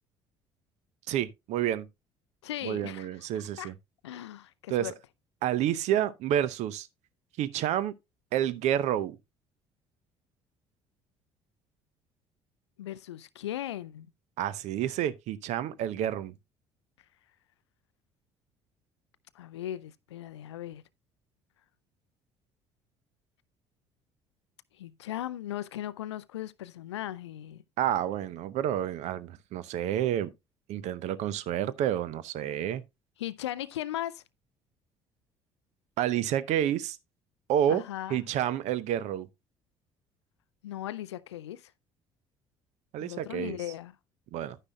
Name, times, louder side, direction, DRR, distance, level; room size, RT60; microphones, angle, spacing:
voice 1, 1.1-1.9 2.6-3.7 4.7-4.9 5.4-6.9 7.4-7.9 8.3-9.2 14.4-16.3 27.8-30.3 30.7-32.8 36.0-37.0 37.5-37.8 38.1-39.3 42.9-43.6 44.3-44.6, right 11 dB, 55° right, 0.7 m, -29 dB
voice 2, 2.4-3.3 3.6-3.7 4.0-4.9 12.8-14.1 19.3-20.8 24.7-27.6 33.2-34.2 37.7-38.2 40.6-41.7 43.0-44.0, left 12 dB, 75° left, 0.4 m, -38 dB
11.0 x 9.7 x 2.2 m
figure-of-eight pair, 55°, 14 cm